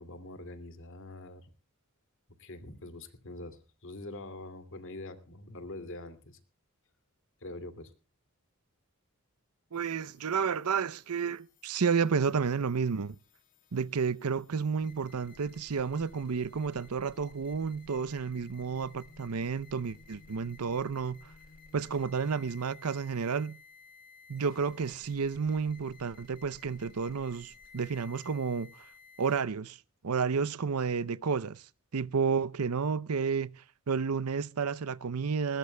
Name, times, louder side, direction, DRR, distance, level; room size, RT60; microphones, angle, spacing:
voice 1, 0.0-1.5 2.4-6.4 7.4-7.9, left 2 dB, 60° left, 2.5 m, -44 dB
sound 1, 9.7-29.4, left 4 dB, 40° left, 3.3 m, -56 dB
voice 2, 9.7-13.2 13.7-21.2 21.7-23.6 24.3-28.7 29.2-29.8 30.0-31.6 31.9-33.5 33.9-35.6, right 5 dB, 80° right, 0.6 m, -31 dB
20.0 x 20.0 x 2.2 m
head